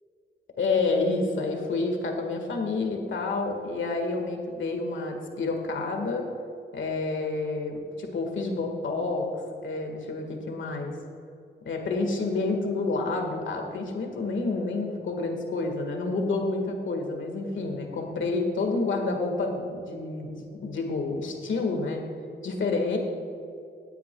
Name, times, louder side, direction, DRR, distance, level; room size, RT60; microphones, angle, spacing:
voice 1, 0.6-6.2 6.7-9.2 9.6-10.9 11.6-22.0 22.4-23.0, left 3 dB, 75° left, 3 dB, 1.7 m, -29 dB
17.5 x 9.3 x 2.3 m, 2.5 s
cardioid pair, 50°, 20 cm